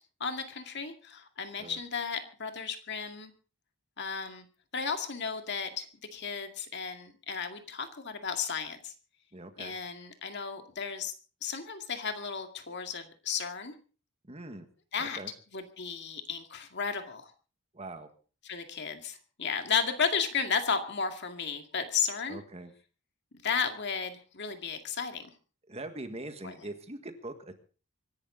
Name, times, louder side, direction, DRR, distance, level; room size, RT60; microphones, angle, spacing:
voice 1, 0.2-3.3 4.0-4.5 4.7-5.9 6.1-8.9 9.6-11.1 11.4-13.7 14.9-15.2 15.5-17.3 18.4-22.4 23.4-25.3 26.4-26.5, left 6 dB, 50° left, 6 dB, 2.1 m, -34 dB
voice 2, 1.5-1.8 9.3-9.8 14.2-14.7 15.0-15.3 17.7-18.1 22.3-22.7 25.7-27.6, right 2 dB, 30° right, 8 dB, 1.7 m, -42 dB
25.0 x 11.5 x 3.9 m, 0.37 s
head